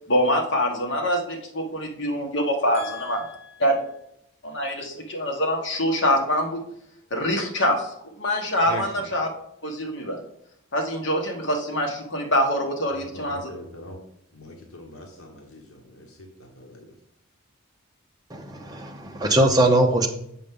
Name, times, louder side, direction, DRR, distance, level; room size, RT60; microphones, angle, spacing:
voice 1, 0.1-3.2 3.6-3.7 4.4-6.6 7.1-7.9 8.2-9.3 9.6-10.2 10.7-13.5, equal, 55° left, 1.3 m, -24 dB
voice 2, 2.7-3.6 8.6-8.8 12.9-14.0 14.3-16.9, left 2 dB, 80° left, 1.1 m, -42 dB
voice 3, 18.3-20.1, right 1 dB, 15° right, 0.7 m, -21 dB
7.5 x 5.5 x 3.7 m
head